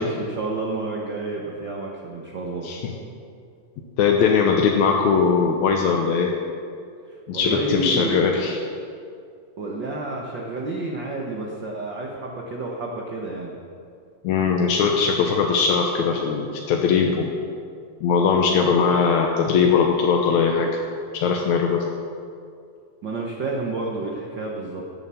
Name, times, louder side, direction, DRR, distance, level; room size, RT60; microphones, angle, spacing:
voice 1, 0.0-2.7 7.1-8.2 9.6-13.5 23.0-24.8, right 2 dB, 55° right, -1 dB, 1.2 m, -30 dB
voice 2, 2.6-3.0 4.0-6.3 7.3-8.6 14.2-17.3 18.0-20.8 21.1-21.8, left 5 dB, 70° left, 1 dB, 2.0 m, -20 dB
16.5 x 8.1 x 7.0 m, 2.3 s
omnidirectional pair, 3.9 m